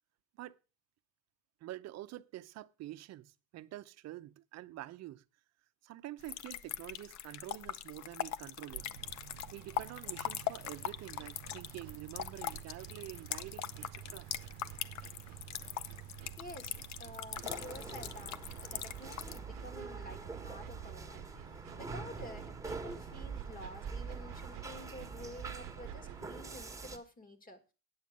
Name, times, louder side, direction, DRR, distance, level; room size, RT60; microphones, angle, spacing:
voice 1, 1.6-5.2 5.8-8.9 9.5-14.3 21.5-21.6, right 15 dB, 50° right, 0.7 m, -47 dB
sound 1, 6.2-19.4, left 12 dB, 55° left, 0.7 m, -41 dB
sound 2, 8.7-26.3, right 14 dB, 85° right, 0.7 m, -50 dB
voice 2, 16.4-27.6, left 1 dB, 25° left, 1.7 m, -50 dB
sound 3, 17.4-27.0, right 4 dB, 10° right, 1.4 m, -45 dB
9.6 x 7.1 x 6.4 m
cardioid pair, 120°, 34 cm